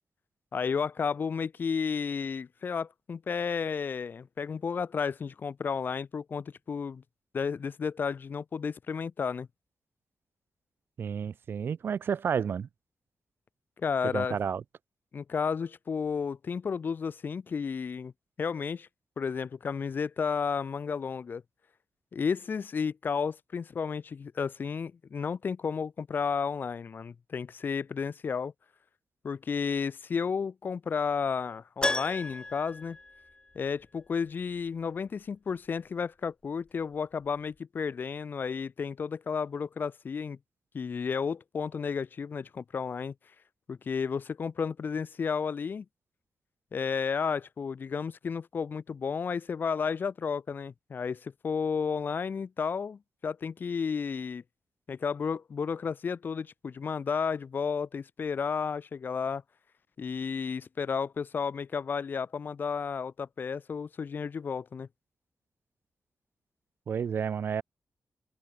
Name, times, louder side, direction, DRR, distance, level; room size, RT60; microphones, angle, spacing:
voice 1, 0.5-7.0 7.3-9.5 13.8-14.4 15.1-18.1 18.4-18.9 19.2-21.4 22.1-28.5 29.2-33.0 33.5-40.4 40.7-43.1 43.7-45.8 46.7-54.4 54.9-59.4 60.0-64.9, left 6 dB, 60° left, 6.5 m, -32 dB
voice 2, 11.0-12.7 14.1-14.6 66.9-67.6, right 7 dB, 75° right, 7.7 m, -31 dB
Keyboard (musical), 31.8-33.9 34.1-34.2 36.9-37.0 37.2-37.3, left 2 dB, 20° left, 6.9 m, -34 dB
open air
cardioid pair, 85°, 4 cm